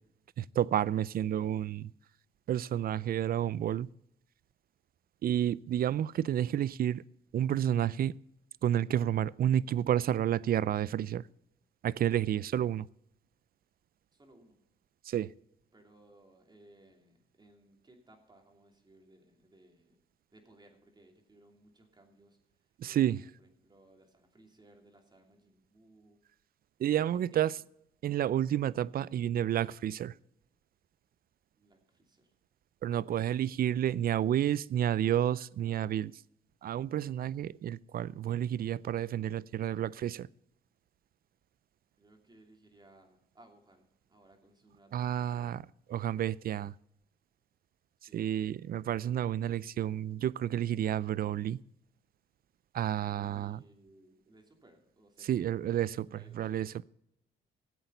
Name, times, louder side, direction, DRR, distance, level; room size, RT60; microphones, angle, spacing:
voice 1, 0.4-1.9 2.5-3.9 5.2-7.0 7.3-8.1 8.6-11.2 11.8-12.9 15.1-15.3 22.8-23.2 26.8-27.5 28.0-30.1 32.8-36.1 36.6-40.3 44.9-46.7 48.1-51.6 52.7-53.6 55.3-56.8, right 11 dB, 50° right, 0.4 m, -30 dB
voice 2, 14.1-14.6 15.7-20.0 20.3-22.4 22.8-26.2 26.8-27.5 31.5-32.3 42.0-45.5 48.0-48.2 53.0-55.3 56.1-56.6, right 1 dB, 20° right, 2.9 m, -61 dB
14.0 x 8.0 x 6.7 m
cardioid pair, 90°, 20 cm